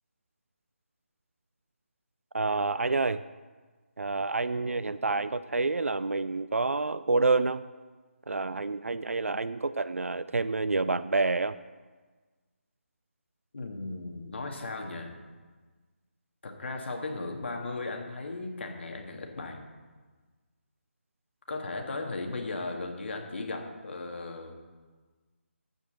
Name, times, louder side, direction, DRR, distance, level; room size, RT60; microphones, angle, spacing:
voice 1, 2.3-3.2 4.0-7.6 8.3-11.6, right 3 dB, 85° right, 14 dB, 0.4 m, -28 dB
voice 2, 13.5-15.1 16.4-19.6 21.5-24.5, left 3 dB, 60° left, 2 dB, 2.0 m, -36 dB
14.0 x 5.2 x 6.5 m, 1.4 s
figure-of-eight pair, 155°, 7 cm